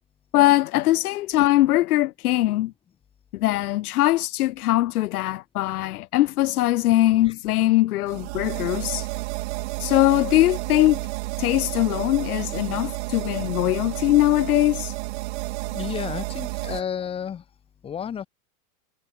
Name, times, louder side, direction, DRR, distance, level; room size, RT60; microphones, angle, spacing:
voice 1, 0.3-2.7 3.3-9.1 9.8-11.0 11.4-14.9, left 16 dB, 75° left, 1.0 m, -21 dB
sound 1, 8.1-16.8, right 22 dB, 45° right, 8.0 m, -31 dB
voice 2, 15.7-17.4 17.8-18.3, left 8 dB, 10° left, 1.8 m, -31 dB
supercardioid pair, 175°, 45 cm